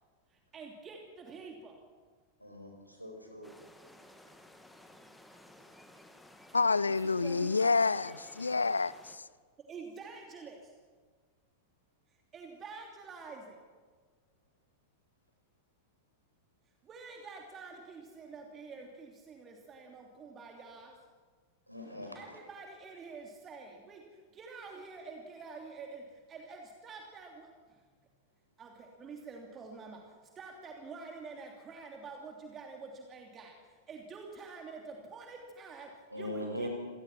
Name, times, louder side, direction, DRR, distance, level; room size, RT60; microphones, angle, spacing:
voice 1, 0.3-1.8 6.9-8.2 9.7-10.7 12.3-13.6 16.8-21.0 22.1-27.8 28.6-36.7, right 4 dB, 25° right, 2.9 m, -48 dB
voice 2, 2.4-3.5 21.7-22.2 36.1-36.7, equal, 90° right, 5.1 m, -40 dB
sound 1, 3.4-9.2, left 1 dB, 5° left, 2.1 m, -56 dB
voice 3, 6.5-9.2, left 4 dB, 80° left, 0.6 m, -28 dB
27.0 x 19.0 x 6.0 m
figure-of-eight pair, 90°, 0 cm